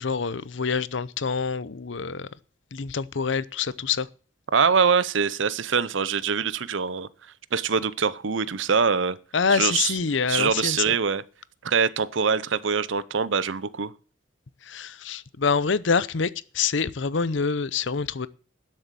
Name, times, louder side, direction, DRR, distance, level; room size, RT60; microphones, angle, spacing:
voice 1, 0.0-2.3 2.7-4.1 9.3-11.0 14.6-18.3, left 5 dB, 65° left, 0.7 m, -26 dB
voice 2, 4.5-7.1 7.5-9.2 9.5-9.9 10.3-11.2 11.6-13.9, right 6 dB, 65° right, 0.7 m, -24 dB
12.5 x 7.6 x 7.5 m
head